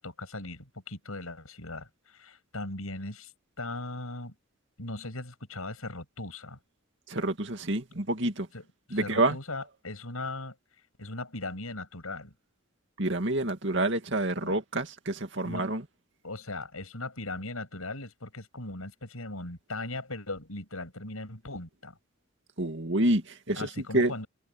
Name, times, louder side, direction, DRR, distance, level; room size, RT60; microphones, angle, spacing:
voice 1, 0.0-3.3 3.6-4.3 4.8-6.6 8.5-10.5 11.0-12.3 14.4-14.6 15.4-15.7 16.2-22.0 23.6-24.3, left 2 dB, 90° left, 7.7 m, -38 dB
voice 2, 7.1-8.5 8.9-9.4 13.0-15.8 22.6-24.1, right 1 dB, 55° right, 2.4 m, -28 dB
head